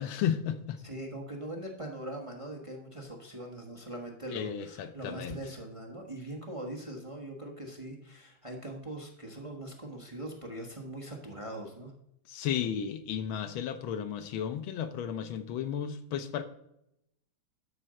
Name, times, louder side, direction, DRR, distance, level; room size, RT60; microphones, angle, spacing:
voice 1, 0.0-0.8 4.3-5.4 12.3-16.4, left 9 dB, 80° left, 1.6 m, -33 dB
voice 2, 0.8-11.9, right 1 dB, 20° right, 1.1 m, -41 dB
12.5 x 4.5 x 6.4 m
omnidirectional pair, 2.2 m